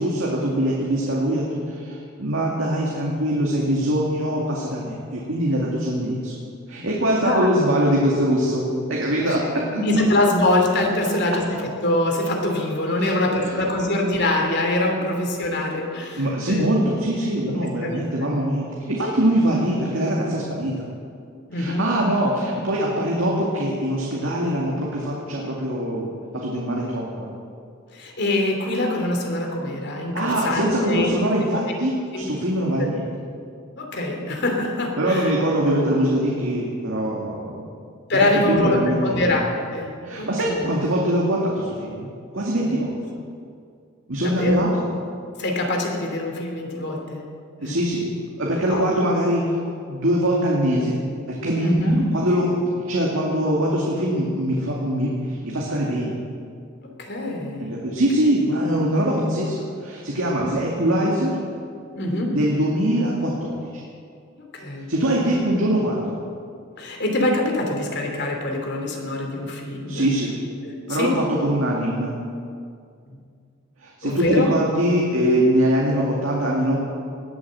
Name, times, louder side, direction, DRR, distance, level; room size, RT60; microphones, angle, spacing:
voice 1, 0.0-6.3 6.7-9.6 13.0-13.6 16.2-20.9 21.5-26.1 26.3-27.3 30.1-33.0 35.0-37.7 38.5-39.3 40.0-42.1 42.3-43.0 44.1-44.8 47.6-48.0 48.4-49.5 49.9-51.0 51.3-51.8 52.1-56.2 57.6-59.5 59.8-61.4 62.3-63.8 64.9-66.2 69.9-70.3 70.9-72.1 73.8-76.8, right 1 dB, 85° right, -3 dB, 2.3 m, -23 dB
voice 2, 9.7-16.7 17.8-18.3 21.5-21.9 27.9-31.1 31.5-31.6 32.1-32.3 32.8-32.9 33.8-35.3 38.1-40.7 42.6-42.8 44.2-44.6 45.4-47.3 47.6-47.8 48.6-48.8 51.6-52.0 57.0-57.8 60.4-60.5 62.0-62.3 64.5-64.9 65.2-65.3 66.8-70.1 70.6-71.1 73.1-73.2 74.0-74.5, left 1 dB, 60° left, 1 dB, 2.8 m, -24 dB
19.5 x 9.1 x 7.5 m, 2.3 s
head